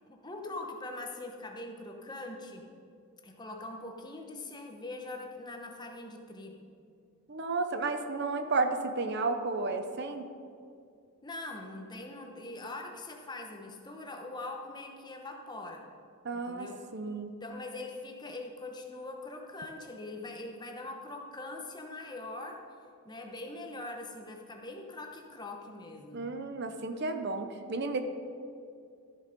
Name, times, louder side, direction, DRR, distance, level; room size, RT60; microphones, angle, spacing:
voice 1, 0.0-2.6 3.2-6.5 11.2-15.9 16.3-16.9 17.4-22.6 23.0-26.3, left 2 dB, 20° left, 2 dB, 1.0 m, -42 dB
voice 2, 7.3-10.2 16.2-16.7 16.9-17.4 26.1-28.0, right 3 dB, 50° right, 7 dB, 0.7 m, -32 dB
13.5 x 7.1 x 5.3 m, 2.4 s
head